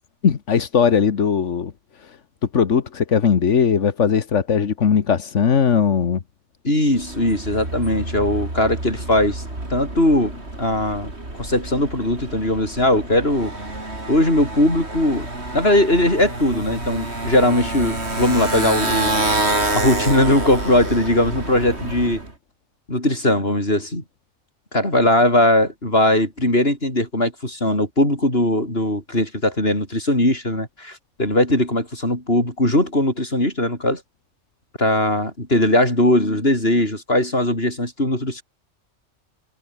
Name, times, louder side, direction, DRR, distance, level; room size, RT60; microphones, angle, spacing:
voice 1, 0.2-1.7 2.0-2.2 2.5-6.2, left 7 dB, 85° left, 1.7 m, -19 dB
voice 2, 6.6-9.4 9.7-11.1 11.4-13.5 14.1-15.3 15.5-19.1 19.7-22.2 22.9-24.0 24.7-34.0 34.8-38.4, left 1 dB, 55° left, 8.3 m, -19 dB
Motorcycle, 6.9-22.3, right 2 dB, 65° right, 5.7 m, -28 dB
omnidirectional pair, 1.2 m